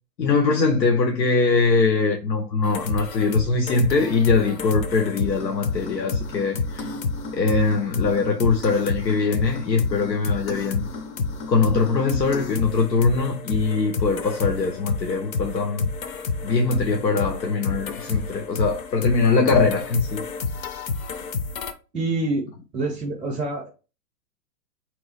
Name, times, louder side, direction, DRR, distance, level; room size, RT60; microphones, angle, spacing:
voice 1, 0.2-6.9 7.3-10.8 11.5-15.9 16.4-20.2, left 4 dB, 90° left, 0.8 m, -22 dB
sound 1, 2.6-21.7, left 4 dB, 55° left, 0.8 m, -29 dB
voice 2, 21.9-22.5 22.7-23.7, right 2 dB, 5° right, 0.3 m, -26 dB
3.8 x 3.0 x 3.1 m
hypercardioid pair, 125°, 50 cm